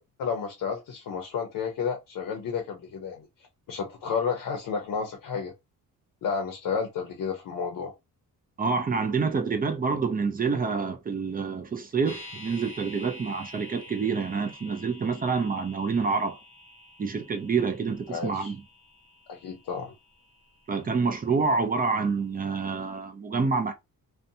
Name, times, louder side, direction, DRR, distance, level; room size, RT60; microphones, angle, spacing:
voice 1, 0.2-3.3 3.7-5.5 6.2-7.9 18.1-18.5 19.3-19.9, left 6 dB, 65° left, 0.7 m, -31 dB
voice 2, 8.6-16.4 17.0-18.6 20.7-23.7, right 4 dB, 25° right, 0.4 m, -27 dB
sound 1, 12.0-22.1 22.4-22.5, left 1 dB, 35° left, 0.8 m, -48 dB
2.5 x 2.2 x 2.7 m
wide cardioid pair, 155°, 36 cm